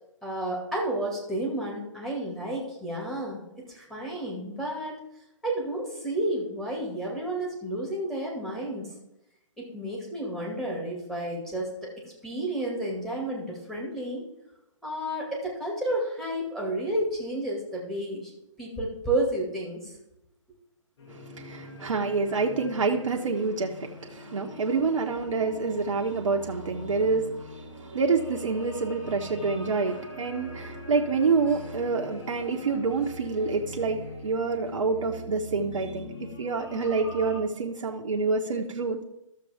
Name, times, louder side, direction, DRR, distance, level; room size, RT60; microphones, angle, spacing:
voice 1, 0.2-3.4 3.7-5.0 5.4-8.9 9.6-14.2 14.8-18.3 18.6-19.9 24.5-24.8, right 1 dB, ahead, -3 dB, 2.2 m, -31 dB
sound 1, 21.0-37.4, left 1 dB, 50° left, 2.1 m, -43 dB
voice 2, 21.1-36.1 36.4-39.0, right 4 dB, 65° right, 0 dB, 1.1 m, -27 dB
13.5 x 6.9 x 3.5 m, 0.88 s
hypercardioid pair, 145°, 17 cm